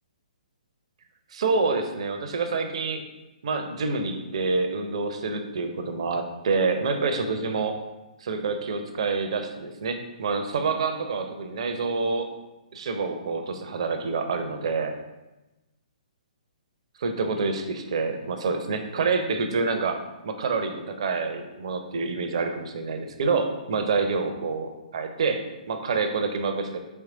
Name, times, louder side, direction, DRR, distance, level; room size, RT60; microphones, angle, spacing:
voice 1, 1.3-3.0 3.4-7.8 8.2-12.3 12.7-14.9 17.0-20.0 20.2-26.8, right 4 dB, 50° right, 6 dB, 0.5 m, -27 dB
4.5 x 3.1 x 3.6 m, 1.1 s
figure-of-eight pair, 125°, 4 cm